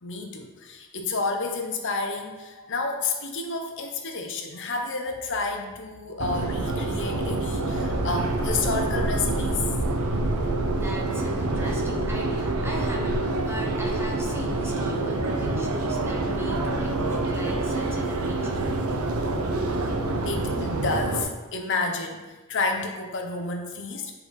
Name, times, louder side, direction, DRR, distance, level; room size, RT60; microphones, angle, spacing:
voice 1, 0.0-9.6 20.3-24.1, left 3 dB, 55° left, 3 dB, 0.9 m, -30 dB
Subway metro underground, 6.2-21.2, right 2 dB, 75° right, 0.8 m, -26 dB
voice 2, 10.7-18.6, equal, 10° right, -1 dB, 0.9 m, -38 dB
8.4 x 4.8 x 3.5 m, 1.2 s
head